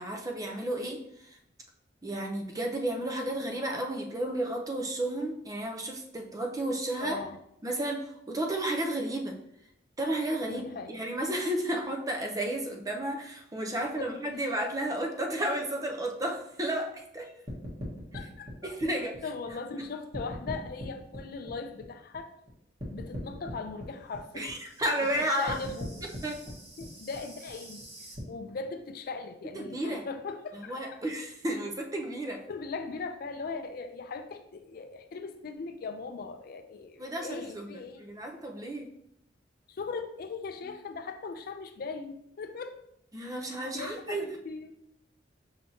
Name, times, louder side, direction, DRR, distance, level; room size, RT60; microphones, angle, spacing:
voice 1, 0.0-1.4 2.0-7.2 7.6-9.4 10.0-17.3 18.6-19.2 19.8-19.9 24.3-25.6 26.2-26.4 29.5-30.0 30.5-32.4 37.0-38.9 43.1-44.4, right 1 dB, 20° right, 2 dB, 0.5 m, -32 dB
voice 2, 7.0-7.4 10.4-11.0 13.8-14.1 18.1-18.7 19.2-22.3 22.9-24.6 25.3-26.0 26.8-31.0 32.5-38.0 39.7-42.8 43.4-44.7, left 4 dB, 55° left, 8 dB, 0.4 m, -39 dB
sound 1, 17.5-19.8 20.1-22.5 22.8-28.2, equal, 35° right, 1.3 m, -41 dB
5.6 x 3.4 x 2.7 m, 0.76 s
head